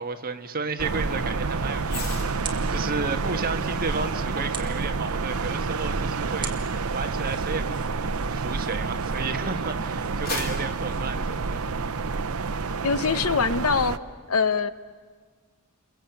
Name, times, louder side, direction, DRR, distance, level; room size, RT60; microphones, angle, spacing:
voice 1, 0.0-11.7, right 4 dB, 45° right, 6 dB, 1.4 m, -33 dB
sound 1, 0.8-14.0, right 4 dB, 80° right, 0.8 m, -29 dB
sound 2, 1.8-9.2 9.7-12.1 12.4-12.7, left 3 dB, 45° left, 3.2 m, -42 dB
sound 3, 2.3-11.3, right 5 dB, 25° right, 2.2 m, -45 dB
voice 2, 12.8-14.0 14.3-14.7, left 5 dB, 80° left, 13 dB, 0.9 m, -23 dB
29.0 x 23.0 x 8.2 m, 1.5 s
head